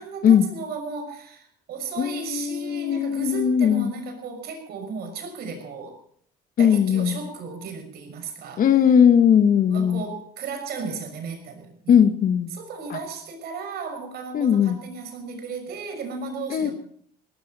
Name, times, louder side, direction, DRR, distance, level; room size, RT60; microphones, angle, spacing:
voice 1, 0.0-6.0 6.6-8.6 9.7-12.0 12.5-16.7, right 4 dB, 70° right, 6 dB, 6.1 m, -35 dB
voice 2, 2.0-3.9 6.6-7.2 8.6-10.0 11.9-12.5 12.9-13.0 14.3-14.8 16.5-16.7, left 8 dB, 55° left, 10 dB, 1.7 m, -19 dB
18.5 x 16.0 x 4.3 m, 0.62 s
cardioid pair, 110°, 17 cm